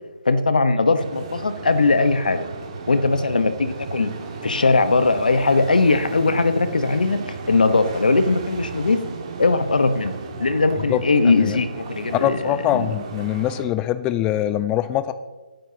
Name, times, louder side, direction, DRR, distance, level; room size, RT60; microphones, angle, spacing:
voice 1, 0.2-2.4 2.9-4.1 4.4-9.0 9.4-12.4 12.7-12.9, left 3 dB, 75° left, 10 dB, 1.2 m, -20 dB
sound 1, 1.0-13.6, right 4 dB, 35° right, 1.9 m, -35 dB
voice 2, 12.1-15.1, left 12 dB, 15° left, 12 dB, 0.5 m, -23 dB
23.0 x 9.2 x 2.9 m, 1.3 s
figure-of-eight pair, 145°, 5 cm